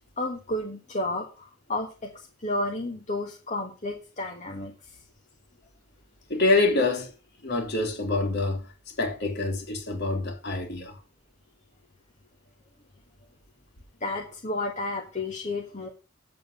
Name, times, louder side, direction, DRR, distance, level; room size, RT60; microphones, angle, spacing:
voice 1, 0.2-2.1 2.4-5.0 14.0-15.9, left 2 dB, 35° left, 1.5 m, -32 dB
voice 2, 6.3-7.1 7.4-11.0, left 2 dB, 55° left, 3.0 m, -26 dB
9.4 x 7.7 x 6.6 m
head